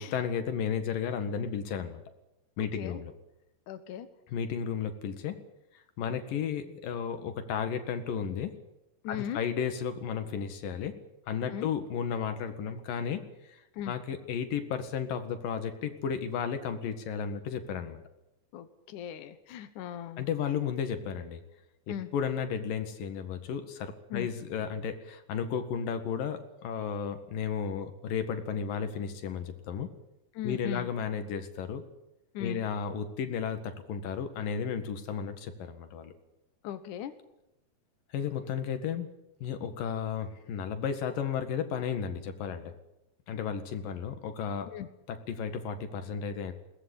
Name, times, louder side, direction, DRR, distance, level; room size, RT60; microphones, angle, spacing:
voice 1, 0.0-2.0 2.6-3.1 4.3-5.4 6.0-8.6 9.1-11.0 11.3-13.6 13.9-18.0 20.2-21.4 21.9-29.9 30.4-31.8 32.4-36.1 38.1-39.1 39.4-42.7 43.3-44.7 45.1-46.5, left 7 dB, 90° left, 8 dB, 3.5 m, -33 dB
voice 2, 2.6-3.0 3.7-4.1 9.0-9.4 11.4-11.7 13.7-13.9 18.5-20.3 21.9-22.1 24.1-24.3 30.3-30.9 32.3-32.6 36.6-37.1 44.7-44.9, left 10 dB, 70° left, 9 dB, 2.6 m, -38 dB
21.5 x 19.0 x 8.5 m, 0.90 s
omnidirectional pair, 3.8 m